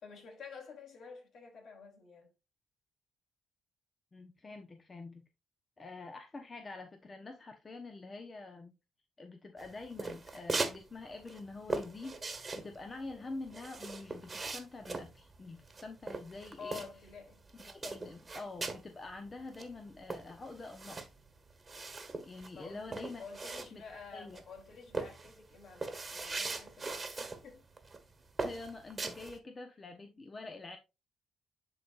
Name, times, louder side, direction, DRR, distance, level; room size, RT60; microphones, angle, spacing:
voice 1, 0.0-2.3 16.6-17.5 22.5-27.7, left 5 dB, 60° left, 2.9 m, -50 dB
voice 2, 4.1-5.2 5.8-8.7 9.2-16.8 17.7-21.0 22.2-23.2 23.7-23.8 24.1-24.4 28.4-30.8, left 3 dB, 30° left, 1.0 m, -46 dB
sound 1, 9.6-10.8 11.1-17.2 17.5-18.9 19.3-19.4 19.5-24.0 24.3-24.6 24.9-27.4 27.8-28.0 28.4-29.4, right 3 dB, 30° right, 1.4 m, -40 dB
11.0 x 3.9 x 2.5 m
cardioid pair, 90°, 0 cm